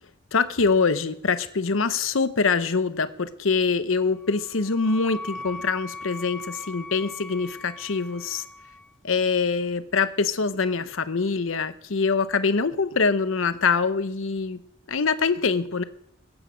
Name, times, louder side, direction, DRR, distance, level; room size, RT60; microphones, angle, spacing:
voice 1, 0.3-8.4 9.0-14.6 14.9-15.8, left 4 dB, 85° left, 12 dB, 0.8 m, -24 dB
Wind instrument woodwind instrument, 4.1-8.9, left 2 dB, 5° left, 0.7 m, -40 dB
21.5 x 8.9 x 5.1 m, 0.73 s
head